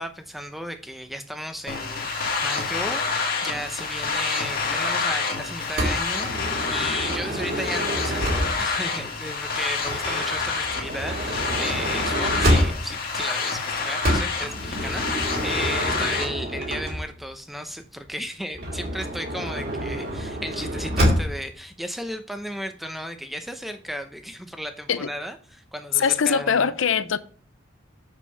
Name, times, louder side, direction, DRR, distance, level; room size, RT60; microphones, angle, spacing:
voice 1, 0.0-26.8, equal, ahead, 0.7 m, -35 dB
sound 1, 1.7-16.3, left 4 dB, 45° left, 1.9 m, -28 dB
Motor vehicle (road) / Sliding door, 5.8-8.8 9.8-13.1 14.0-17.3 18.5-21.5, equal, 50° right, 2.8 m, -27 dB
voice 2, 26.0-27.2, left 7 dB, 80° left, 0.6 m, -22 dB
7.3 x 6.7 x 5.6 m
head